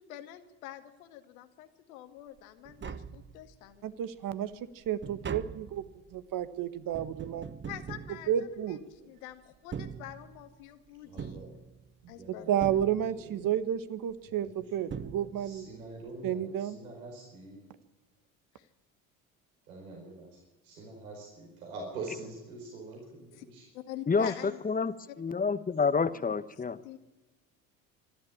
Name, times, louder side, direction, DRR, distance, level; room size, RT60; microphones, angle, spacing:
voice 1, 0.0-3.8 7.7-11.5 12.1-12.6 18.6-18.7 23.4-23.5 23.7-24.6 25.1-25.2 25.8-26.3 26.8-27.0, left 13 dB, 75° left, 8 dB, 1.9 m, -46 dB
Tap, 2.4-2.5 2.7-3.8 4.2-9.0 9.6-10.6 11.2-12.1 12.6-13.4 14.5-14.6 14.9-15.7 16.0-16.1, right 7 dB, 25° right, 1.0 m, -42 dB
voice 2, 3.8-5.9 6.1-7.4 8.3-8.8 12.3-15.7 16.2-16.8, right 10 dB, 50° right, 13 dB, 1.5 m, -31 dB
voice 3, 11.0-11.5 12.0-12.5 12.9-13.5 14.2-14.6 15.4-17.6 19.7-20.4 20.6-23.6 24.2-24.5, right 3 dB, 80° right, -1 dB, 4.9 m, -45 dB
voice 4, 24.1-26.8, left 5 dB, 20° left, 14 dB, 1.2 m, -29 dB
25.5 x 12.0 x 8.8 m, 1.1 s
hypercardioid pair, 65°, 42 cm